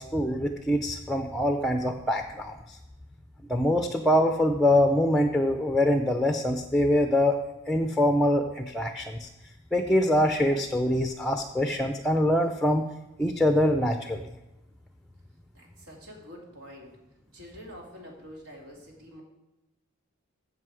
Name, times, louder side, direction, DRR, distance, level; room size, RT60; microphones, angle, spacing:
voice 1, 0.0-2.8 3.5-7.4 7.7-9.3 9.7-12.8 13.2-14.2, left 1 dB, ahead, 5 dB, 0.5 m, -24 dB
voice 2, 15.5-16.9 17.3-19.2, equal, 75° right, 0 dB, 2.6 m, -46 dB
15.5 x 5.7 x 4.8 m, 1.0 s
head